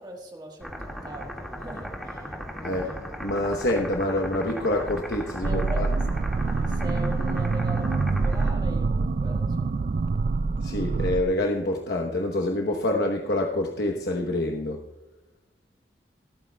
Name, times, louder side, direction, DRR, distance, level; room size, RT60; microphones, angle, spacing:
voice 1, 0.0-2.3 2.6-3.0 5.4-6.0 6.7-9.7, right 1 dB, 25° right, 1 dB, 1.4 m, -40 dB
sound 1, 0.6-8.5, equal, ahead, 1.9 m, -37 dB
voice 2, 2.6-5.9 10.6-14.8, left 1 dB, 65° left, 1 dB, 1.0 m, -27 dB
sound 2, 5.4-11.2, right 4 dB, 45° right, 0.4 m, -26 dB
26.5 x 9.1 x 2.3 m, 1.0 s
head